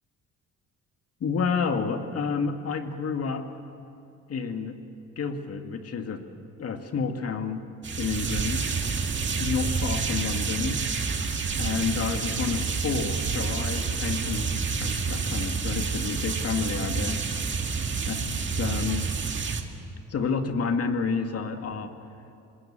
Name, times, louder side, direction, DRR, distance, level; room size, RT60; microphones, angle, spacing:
voice 1, 1.2-3.5 4.3-4.8 5.2-6.2 6.6-7.6 8.0-8.7 9.3-10.8 11.6-17.4 18.1-18.3 18.6-19.1 20.1-21.9, left 5 dB, 50° left, 6 dB, 2.1 m, -30 dB
sound 1, 7.8-19.6, right 5 dB, 40° right, 2.1 m, -28 dB
26.0 x 20.5 x 8.7 m, 2.7 s
cardioid pair, 90°, 30 cm